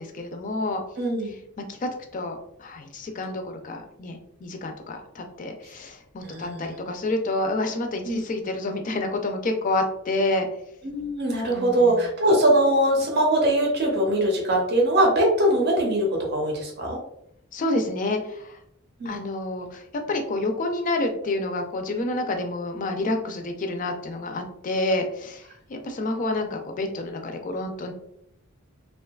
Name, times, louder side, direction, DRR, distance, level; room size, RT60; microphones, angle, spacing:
voice 1, 0.0-0.8 1.7-10.5 11.5-12.1 17.5-18.6 19.1-27.9, left 2 dB, 40° left, 5 dB, 0.3 m, -29 dB
voice 2, 1.0-1.4 6.2-6.8 8.0-8.2 10.8-17.0 19.0-19.2, right 1 dB, 50° right, -1 dB, 0.6 m, -22 dB
2.6 x 2.2 x 2.2 m, 0.74 s
head